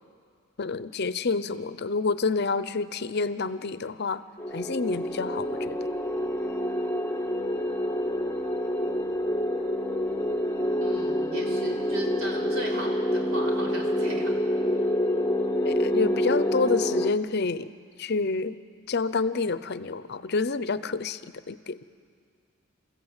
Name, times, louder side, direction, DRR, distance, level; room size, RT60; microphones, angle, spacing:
voice 1, 0.6-4.2 4.5-5.8 15.6-17.7 18.0-18.6 18.9-21.8, left 4 dB, 55° left, 14 dB, 0.6 m, -28 dB
sound 1, 4.4-17.1, left 1 dB, 10° left, 0.8 m, -27 dB
voice 2, 10.8-14.3, right 2 dB, 80° right, -1 dB, 4.0 m, -36 dB
28.5 x 15.0 x 8.1 m, 2.2 s
head